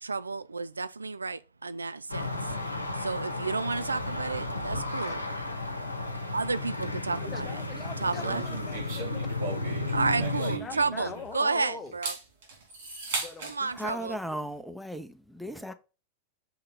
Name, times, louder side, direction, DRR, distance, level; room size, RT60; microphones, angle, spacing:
voice 1, 0.0-2.5 2.9-5.2 6.3-7.5 8.0-8.4 9.8-12.1 13.4-14.2, right 4 dB, 80° right, 0.4 m, -31 dB
sound 1, 2.1-10.6, left 2 dB, 85° left, 0.8 m, -33 dB
voice 2, 7.1-9.3 10.4-12.0 13.1-14.2 15.4-15.7, left 4 dB, 20° left, 1.0 m, -43 dB
sound 2, 8.2-11.4 11.9-13.6, right 4 dB, 60° right, 3.0 m, -37 dB
voice 3, 13.7-15.7, right 1 dB, ahead, 0.7 m, -36 dB
6.9 x 3.7 x 4.2 m
figure-of-eight pair, 90°, 0 cm